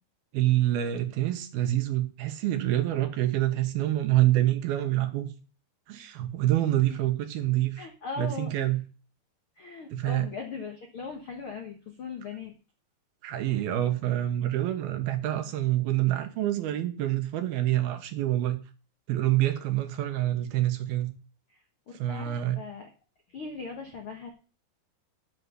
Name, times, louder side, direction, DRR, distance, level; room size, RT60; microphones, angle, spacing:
voice 1, 0.3-5.3 5.9-7.8 8.2-8.9 9.9-10.2 13.2-18.6 19.1-21.1 22.0-22.6, right 14 dB, 75° right, 8 dB, 3.0 m, -26 dB
voice 2, 7.8-8.7 9.6-12.5 21.5-22.9 23.3-24.3, left 5 dB, 65° left, 3 dB, 1.3 m, -39 dB
7.9 x 6.8 x 8.0 m, 0.35 s
omnidirectional pair, 4.5 m